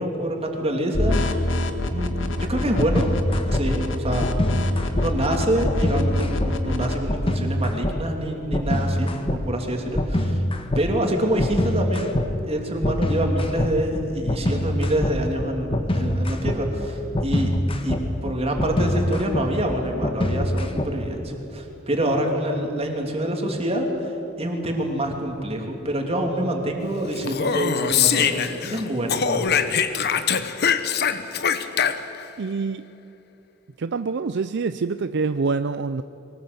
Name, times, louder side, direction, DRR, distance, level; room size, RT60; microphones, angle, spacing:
voice 1, 0.0-1.5 1.9-3.1 3.5-4.3 4.9-10.4 10.8-17.5 17.8-24.1 24.4-29.8, right 1 dB, 30° right, 2 dB, 2.9 m, -26 dB
sound 1, 0.9-6.9, left 1 dB, 70° left, 1.6 m, -26 dB
sound 2, 2.8-3.6 4.2-5.1 5.6-6.5 7.1-7.9 8.5-9.4 9.9-10.8 11.4-12.3 12.8-21.2, left 1 dB, 30° left, 1.5 m, -24 dB
Speech, 27.2-28.8 29.1-32.3, left 7 dB, 55° left, 1.0 m, -23 dB
voice 2, 32.4-32.9 33.8-36.0, right 4 dB, 60° right, 11 dB, 0.5 m, -26 dB
23.0 x 18.5 x 8.0 m, 2.9 s
head